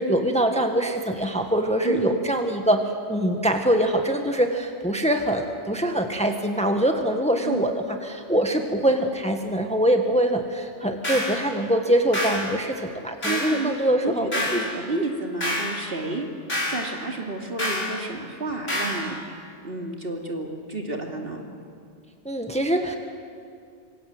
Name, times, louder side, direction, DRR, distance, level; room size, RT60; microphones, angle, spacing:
voice 1, 0.0-2.8 3.1-14.6 22.2-23.0, right 1 dB, 5° left, 4 dB, 1.6 m, -23 dB
voice 2, 1.8-2.2 7.4-7.7 13.2-16.3 16.7-19.2 19.6-21.4, right 2 dB, 50° right, 1 dB, 3.0 m, -30 dB
sound 1, 11.0-11.4 12.1-12.4 13.2-13.5 14.3-14.6 15.4-15.7 16.5-16.8 17.6-17.9 18.7-19.0, left 1 dB, 85° left, 6.5 m, -26 dB
26.0 x 25.0 x 8.0 m, 2.5 s
omnidirectional pair, 1.2 m